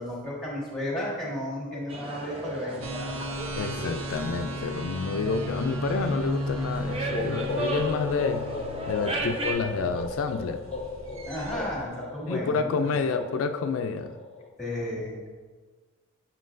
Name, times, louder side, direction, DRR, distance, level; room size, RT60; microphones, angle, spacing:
voice 1, 0.0-3.1 11.3-12.9 14.6-15.3, left 1 dB, ahead, -4 dB, 1.5 m, -33 dB
sound 1, 1.9-9.5, right 2 dB, 25° right, 0.6 m, -36 dB
sound 2, 2.8-11.9, equal, 75° right, 0.6 m, -35 dB
voice 2, 3.5-8.5 8.9-10.6 12.3-14.1, left 5 dB, 75° left, 8 dB, 0.3 m, -29 dB
sound 3, 6.8-14.5, left 3 dB, 30° left, 0.6 m, -37 dB
7.4 x 5.7 x 2.6 m, 1.4 s
head